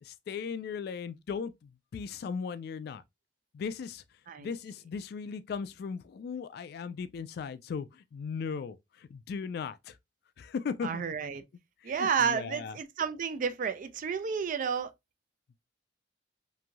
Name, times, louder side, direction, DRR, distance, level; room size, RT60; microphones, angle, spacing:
voice 1, 0.0-3.0 3.5-4.0 4.4-10.0 10.4-11.0 11.8-12.8, left 6 dB, 60° left, 0.3 m, -37 dB
voice 2, 10.8-11.4 11.8-14.9, right 6 dB, 50° right, 0.4 m, -31 dB
3.0 x 2.6 x 2.2 m
head